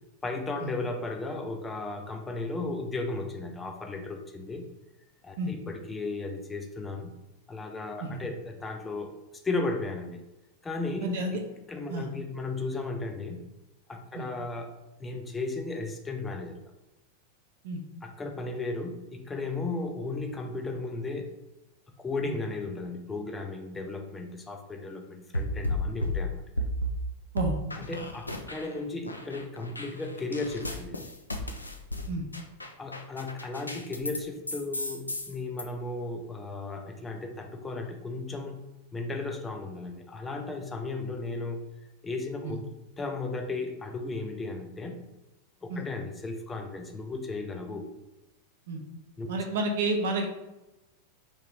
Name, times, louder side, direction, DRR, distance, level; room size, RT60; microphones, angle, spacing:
voice 1, 0.2-4.7 5.2-7.1 7.5-9.1 9.4-10.2 10.6-11.4 11.7-13.5 13.9-16.6 18.0-21.3 22.0-26.4 27.8-31.1 32.8-38.6 38.9-41.6 42.0-42.7 43.0-45.1 45.6-47.9 49.2-49.3, left 3 dB, 15° left, 4 dB, 0.4 m, -35 dB
voice 2, 11.0-11.4 11.9-12.1 14.1-14.2 17.6-17.8 22.3-22.4 27.3-27.6 32.1-32.2 42.4-42.6 45.7-45.8 48.7-48.8 49.3-50.3, right 2 dB, 55° right, 3 dB, 0.6 m, -30 dB
sound 1, 25.3-27.0 27.4-28.8 29.0-34.2 34.5-35.6, left 1 dB, 85° left, 0.3 m, -33 dB
3.0 x 2.8 x 3.5 m, 0.99 s
figure-of-eight pair, 90°, 0 cm